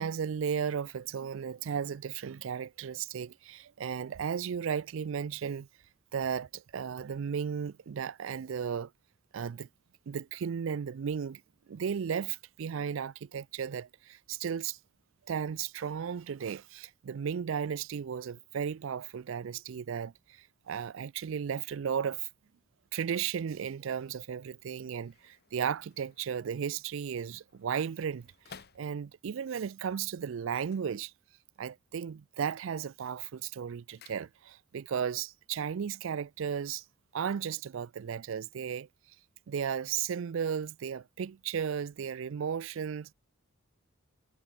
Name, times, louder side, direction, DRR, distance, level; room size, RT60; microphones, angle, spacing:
voice 1, 0.0-5.7 6.1-8.9 9.3-9.7 10.1-11.4 11.7-14.8 15.3-22.3 22.9-31.1 31.6-36.8 37.1-38.9 39.5-43.1, right 7 dB, 65° right, 0.4 m, -35 dB
sound 1, 24.4-29.4 30.5-31.6 31.9-32.4 32.8-34.8 35.1-35.2, left 6 dB, 50° left, 0.9 m, -58 dB
head